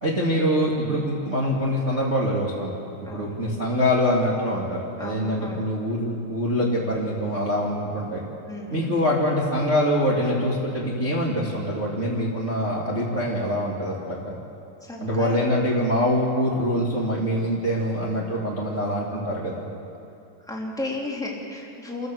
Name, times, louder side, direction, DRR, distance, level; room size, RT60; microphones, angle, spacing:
voice 1, 0.0-2.7 3.1-8.2 8.7-14.3 15.0-19.6, equal, 20° right, -5 dB, 2.1 m, -24 dB
voice 2, 5.0-5.7 8.5-9.0 14.8-15.4 20.4-22.1, left 2 dB, ahead, -3 dB, 2.2 m, -34 dB
28.5 x 13.5 x 7.8 m, 2.6 s
omnidirectional pair, 4.6 m